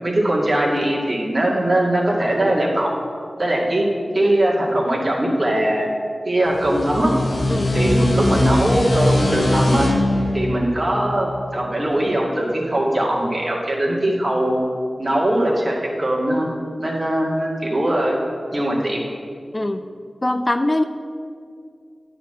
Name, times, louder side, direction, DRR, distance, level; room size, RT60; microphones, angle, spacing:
voice 1, 0.0-2.9 3.4-3.9 4.1-5.9 6.2-7.1 7.7-9.9 10.3-14.6 15.0-16.5 16.8-18.2 18.5-19.0, right 1 dB, 45° right, -3 dB, 2.1 m, -20 dB
sound 1, 6.5-11.8, left 1 dB, 75° left, 1.4 m, -21 dB
voice 2, 19.5-19.9 20.2-20.8, left 1 dB, 30° left, 8 dB, 0.4 m, -21 dB
10.0 x 4.3 x 7.5 m, 2.3 s
wide cardioid pair, 55°, 0 cm